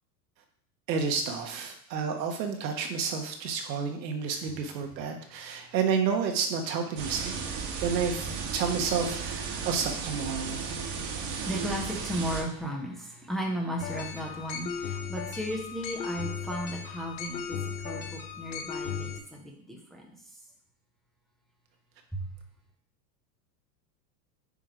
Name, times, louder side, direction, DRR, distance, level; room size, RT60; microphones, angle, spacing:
voice 1, 0.9-7.3 7.8-8.3 8.5-10.6, right 6 dB, 90° right, 4 dB, 1.5 m, -30 dB
sound 1, 7.0-12.4, right 5 dB, 45° right, 1.4 m, -34 dB
voice 2, 10.4-17.6 17.8-20.1 22.1-22.3, equal, ahead, 0 dB, 0.3 m, -35 dB
sound 2, 13.8-19.2, left 6 dB, 85° left, 1.1 m, -36 dB
9.0 x 3.1 x 5.0 m, 0.69 s
supercardioid pair, 140°, 50 cm